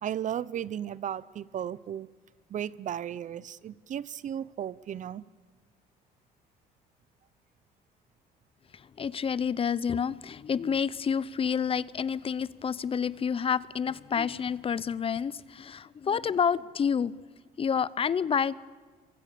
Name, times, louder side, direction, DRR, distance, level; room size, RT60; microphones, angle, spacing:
voice 1, 0.0-2.1 2.5-5.2, right 10 dB, 45° right, 20 dB, 0.7 m, -35 dB
voice 2, 8.7-17.1 17.6-18.5, left 7 dB, 35° left, 20 dB, 0.6 m, -29 dB
27.0 x 24.0 x 6.9 m, 1.4 s
cardioid pair, 110°, 17 cm